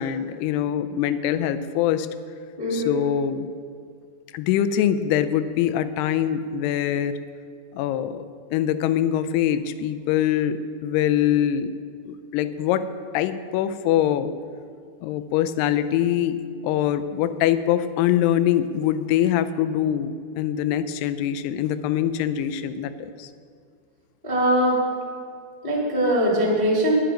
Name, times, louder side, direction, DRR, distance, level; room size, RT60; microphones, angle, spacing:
voice 1, 0.0-2.1 2.7-3.5 4.3-7.2 7.7-8.3 8.5-11.7 12.1-12.9 13.1-14.3 15.0-23.3, left 10 dB, 85° left, 12 dB, 2.6 m, -23 dB
voice 2, 2.6-3.0 24.2-24.8 25.6-26.9, equal, 15° right, -5 dB, 1.9 m, -21 dB
10.5 x 10.5 x 5.1 m, 2.1 s
omnidirectional pair, 4.6 m